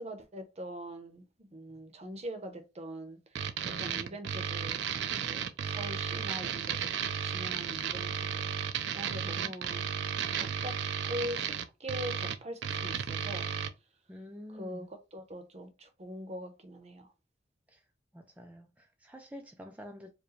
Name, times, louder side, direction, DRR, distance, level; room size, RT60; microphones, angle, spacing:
voice 1, 0.0-3.2 3.7-6.9 7.2-8.5 8.9-9.9 10.3-13.5 14.5-17.1, equal, 35° right, 0.8 m, -42 dB
sound 1, 3.3-13.7, right 8 dB, 70° right, 0.4 m, -34 dB
voice 2, 3.6-4.2 9.2-9.5 14.1-14.9 17.7-17.8 18.1-20.1, equal, 10° right, 0.4 m, -48 dB
4.7 x 2.2 x 3.1 m
head